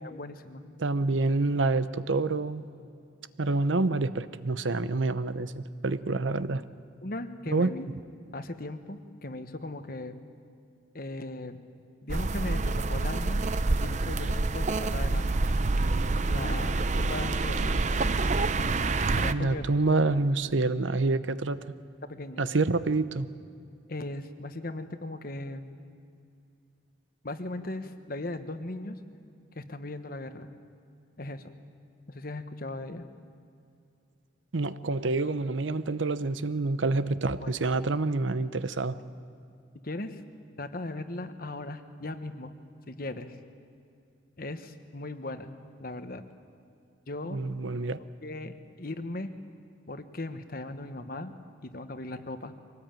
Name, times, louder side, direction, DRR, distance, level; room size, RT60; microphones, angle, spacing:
voice 1, 0.0-0.6 7.0-7.9 8.3-10.2 10.9-11.6 12.0-13.4 13.8-15.3 16.3-17.8 19.1-20.0 22.0-22.5 23.9-25.8 27.2-29.0 29.5-30.5 31.2-31.5 32.1-33.0 37.4-37.5 39.8-40.2 40.6-42.5 42.9-43.4 44.4-45.5 45.8-46.2 47.1-47.4 48.2-49.3 49.9-51.3 51.6-52.5, left 2 dB, 50° left, 9 dB, 1.2 m, -38 dB
voice 2, 0.8-2.6 3.4-6.7 7.5-7.7 19.3-21.6 22.4-23.3 34.5-39.0 47.3-48.0, right 3 dB, 85° right, 13 dB, 0.8 m, -27 dB
sound 1, 12.1-19.3, right 3 dB, 40° right, 0.6 m, -27 dB
23.5 x 18.5 x 9.0 m, 2.5 s
head